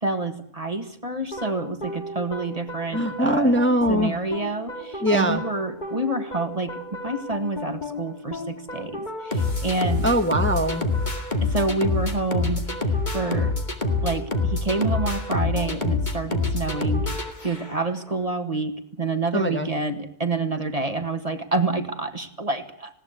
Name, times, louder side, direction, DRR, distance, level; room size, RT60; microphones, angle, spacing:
voice 1, 0.0-3.6 3.9-10.1 11.4-12.6 13.1-13.6 14.0-17.1 17.4-23.0, right 3 dB, 30° right, 8 dB, 1.7 m, -28 dB
sound 1, 1.3-18.0, left 3 dB, 40° left, 2.4 m, -28 dB
voice 2, 2.9-4.1 5.0-5.4 10.0-10.9 19.3-19.7, equal, 10° left, 5 dB, 1.4 m, -22 dB
19.5 x 17.0 x 8.3 m, 0.67 s
omnidirectional pair, 1.3 m